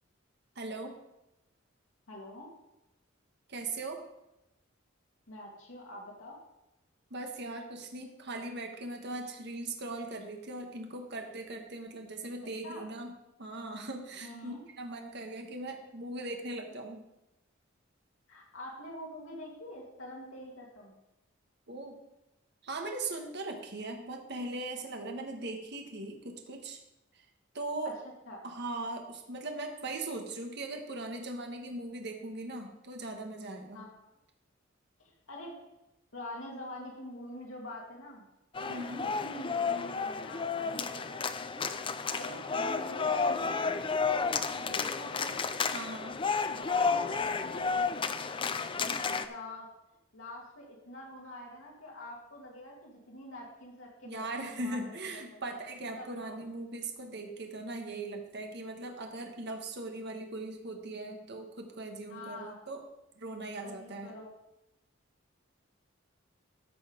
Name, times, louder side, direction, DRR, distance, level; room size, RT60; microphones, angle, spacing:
voice 1, 0.5-0.9 3.5-4.0 7.1-17.0 21.7-22.0 22.6-26.8 27.1-27.2 27.5-27.9 28.4-33.8 38.7-39.0 45.7-46.2 54.0-62.8 63.2-64.1, right 2 dB, 55° right, 3 dB, 1.4 m, -39 dB
voice 2, 2.1-2.5 5.3-6.4 12.6-12.9 14.2-14.6 18.3-20.9 27.8-27.9 28.3-28.4 33.7-34.1 35.0-35.6 36.1-38.3 38.6-38.7 39.0-41.3 41.6-43.8 44.3-45.5 46.5-49.7 50.1-55.2 56.0-56.3 62.1-62.6 63.6-64.3, left 1 dB, 85° left, -2 dB, 2.2 m, -46 dB
sound 1, 38.6-49.3, left 5 dB, 25° left, 0.4 m, -32 dB
13.0 x 5.6 x 5.1 m, 0.91 s
head